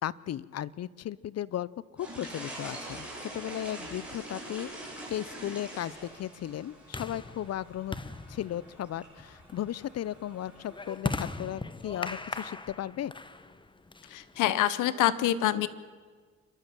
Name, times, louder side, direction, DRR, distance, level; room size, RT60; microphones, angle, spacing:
voice 1, 0.0-8.0 8.3-13.1, left 11 dB, 55° left, 20 dB, 0.7 m, -36 dB
sound 1, 2.0-10.9, right 1 dB, 5° right, 7.5 m, -45 dB
sound 2, 4.2-14.6, left 3 dB, 15° left, 1.1 m, -40 dB
voice 2, 14.1-15.7, left 13 dB, 90° left, 15 dB, 1.0 m, -26 dB
28.5 x 12.5 x 7.6 m, 1.5 s
cardioid pair, 90°, 30 cm